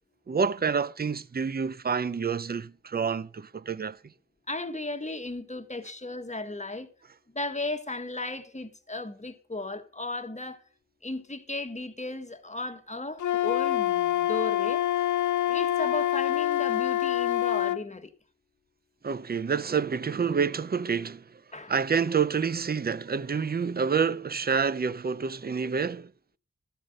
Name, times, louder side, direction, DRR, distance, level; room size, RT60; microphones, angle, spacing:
voice 1, 0.3-4.0 19.0-21.4 21.7-26.1, right 6 dB, 35° right, 0.5 m, -28 dB
voice 2, 4.5-6.9 7.3-10.6 11.0-14.8 15.5-18.1 21.5-21.7, left 2 dB, 25° left, 1.3 m, -35 dB
Wind instrument woodwind instrument, 13.2-17.8, left 13 dB, 90° left, 0.5 m, -26 dB
13.5 x 5.2 x 6.5 m
wide cardioid pair, 65°, 29 cm